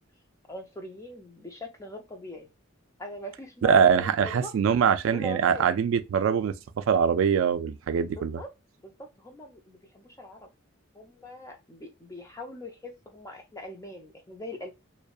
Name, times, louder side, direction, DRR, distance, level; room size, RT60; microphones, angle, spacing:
voice 1, 0.5-2.5 3.0-4.5 5.1-5.8 8.1-8.5 8.8-10.5 10.9-14.7, left 1 dB, 15° left, 0.5 m, -42 dB
voice 2, 3.6-8.4, right 7 dB, 75° right, 0.3 m, -23 dB
2.6 x 2.1 x 2.3 m
head